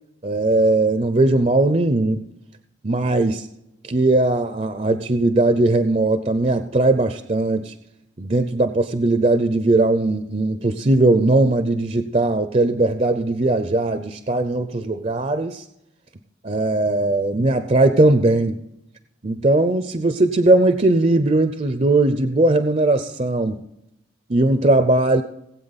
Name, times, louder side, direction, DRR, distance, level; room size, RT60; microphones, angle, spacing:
voice 1, 0.2-2.3 2.8-3.5 3.8-7.7 8.2-15.6 16.4-18.6 19.2-23.6 24.3-25.2, right 2 dB, 35° right, 9 dB, 0.6 m, -19 dB
19.5 x 8.3 x 4.1 m, 0.83 s
head